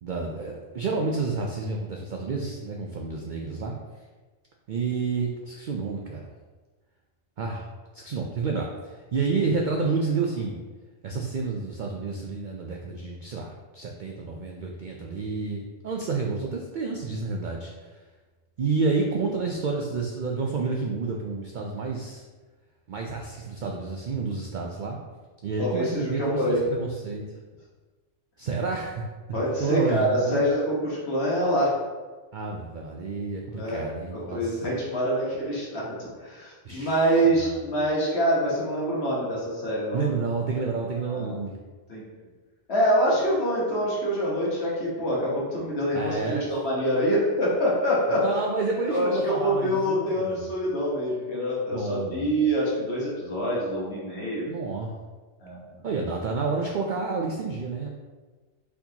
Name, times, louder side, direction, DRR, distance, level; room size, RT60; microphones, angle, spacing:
voice 1, 0.0-3.7 4.7-6.3 7.4-7.7 7.9-10.6 11.0-17.9 18.6-22.2 22.9-25.0 25.4-27.3 28.4-29.0 29.6-30.5 32.3-34.6 36.6-37.6 39.9-41.5 45.9-46.4 48.2-50.4 51.7-52.4 54.5-54.9 55.8-57.9, right 4 dB, 70° right, 0 dB, 0.4 m, -29 dB
voice 2, 25.6-26.6 29.3-31.7 33.5-33.8 34.1-40.1 41.1-41.4 41.9-42.0 42.7-48.2 48.8-54.5 55.4-55.8, equal, 55° left, -6 dB, 1.5 m, -25 dB
4.3 x 4.2 x 2.8 m, 1.3 s
omnidirectional pair, 1.3 m